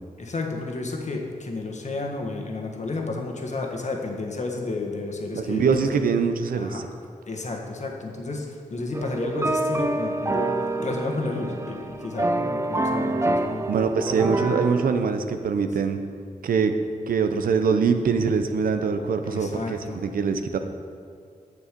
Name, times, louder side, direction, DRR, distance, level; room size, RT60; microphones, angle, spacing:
voice 1, 0.2-6.0 6.5-6.8 7.2-13.7 19.2-20.0, left 3 dB, 55° left, 1 dB, 1.5 m, -32 dB
voice 2, 5.3-6.9 13.7-16.0 16.4-16.8 17.1-20.6, right 5 dB, 80° right, 8 dB, 0.7 m, -23 dB
sound 1, 8.9-14.9, right 2 dB, 20° right, 0.6 m, -26 dB
9.8 x 6.8 x 5.2 m, 2.3 s
cardioid pair, 55°, 15 cm